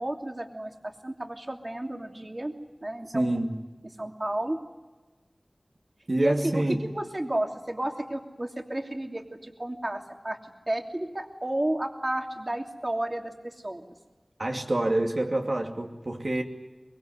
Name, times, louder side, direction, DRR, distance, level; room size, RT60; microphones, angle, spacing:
voice 1, 0.0-2.5 2.8-3.3 4.0-4.6 6.2-10.4 10.7-13.8, right 1 dB, 40° right, 3 dB, 3.0 m, -32 dB
voice 2, 3.1-3.6 6.1-6.8 14.4-16.4, right 1 dB, 65° right, 1 dB, 2.7 m, -27 dB
23.5 x 23.0 x 9.6 m, 1.2 s
wide cardioid pair, 50°, 0 cm